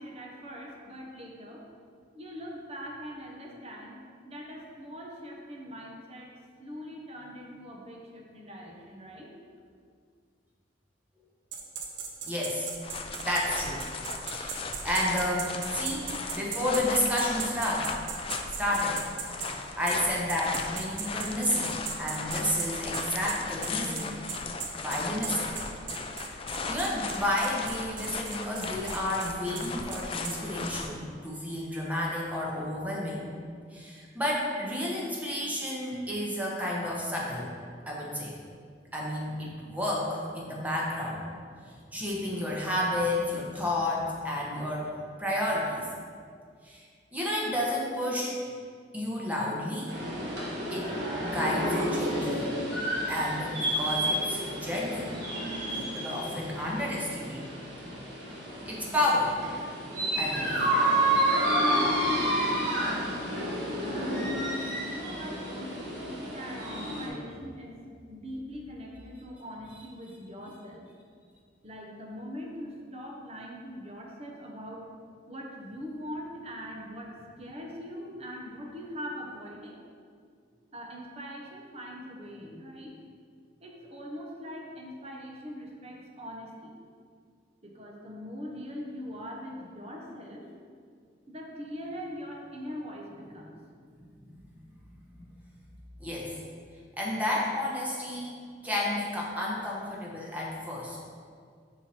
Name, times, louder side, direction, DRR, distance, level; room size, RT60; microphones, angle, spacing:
voice 1, 0.0-1.7 2.1-4.0 4.2-6.3 6.6-9.3 60.5-61.4 61.9-64.3 64.8-67.8 68.1-70.8 71.6-74.9 75.3-79.8 80.7-82.9 83.6-86.8 87.6-90.5 91.3-93.6, equal, 35° right, 0 dB, 0.8 m, -42 dB
sound 1, 11.5-19.5 19.9-20.0 20.3-30.4, right 6 dB, 80° right, 0.7 m, -37 dB
voice 2, 12.2-12.7 13.2-13.8 14.2-16.1 16.3-17.9 18.6-19.0 19.4-21.7 22.0-24.2 24.8-25.5 26.1-26.3 26.7-33.2 33.7-37.5 37.9-38.4 38.9-41.2 41.6-44.9 45.2-45.8 46.6-46.8 47.1-48.3 48.9-50.0 50.3-50.4 50.7-50.9 51.2-52.5 53.1-55.1 55.7-57.5 58.7-59.4 60.2-60.6 94.2-94.4 94.7-94.8 96.0-96.3 97.0-98.3 98.6-101.0, left 1 dB, 10° right, -4 dB, 1.0 m, -31 dB
sound 2, 12.8-30.9, left 4 dB, 30° left, 0.3 m, -37 dB
sound 3, 49.9-67.1, right 1 dB, 65° right, 1.5 m, -30 dB
5.7 x 4.5 x 4.3 m, 2.1 s
head